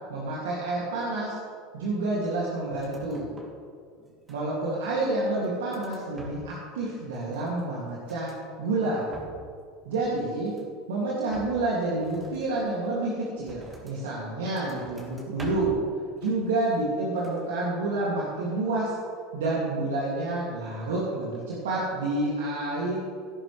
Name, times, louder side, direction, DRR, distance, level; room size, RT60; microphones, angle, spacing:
voice 1, 0.1-1.4 1.7-3.3 4.3-8.3 8.6-9.0 9.9-10.5 10.9-15.7 16.2-18.9 19.3-23.0, right 2 dB, 85° right, -6 dB, 2.5 m, -29 dB
sound 1, 2.7-3.7 4.0-4.7 5.2-6.7 7.0-8.5 8.9-9.6 9.9-10.8 11.3-14.1 14.4-15.9 16.2-16.9 17.2-17.5, right 1 dB, 25° right, 2.9 m, -47 dB
17.0 x 10.5 x 3.4 m, 2.1 s
hypercardioid pair, 90°, 0 cm